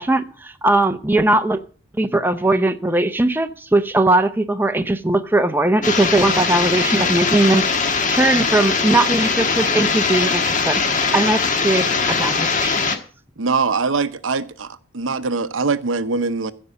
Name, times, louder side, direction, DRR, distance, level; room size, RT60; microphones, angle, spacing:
voice 1, 0.0-1.6 2.0-7.6 8.1-13.0, right 2 dB, 10° right, 0.6 m, -19 dB
sound 1, 5.8-13.0, left 4 dB, 40° left, 1.4 m, -21 dB
voice 2, 13.4-16.5, right 4 dB, 75° right, 0.8 m, -23 dB
15.0 x 5.4 x 8.1 m
head